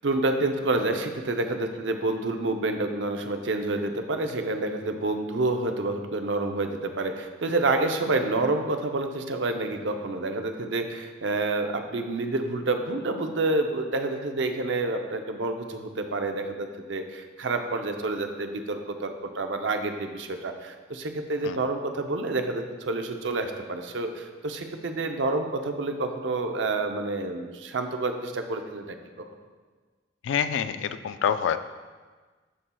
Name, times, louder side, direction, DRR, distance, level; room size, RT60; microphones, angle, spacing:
voice 1, 0.0-29.3, right 2 dB, 80° right, 5 dB, 0.6 m, -28 dB
voice 2, 30.2-31.6, left 8 dB, 85° left, 11 dB, 0.3 m, -26 dB
12.0 x 4.3 x 2.3 m, 1.4 s
head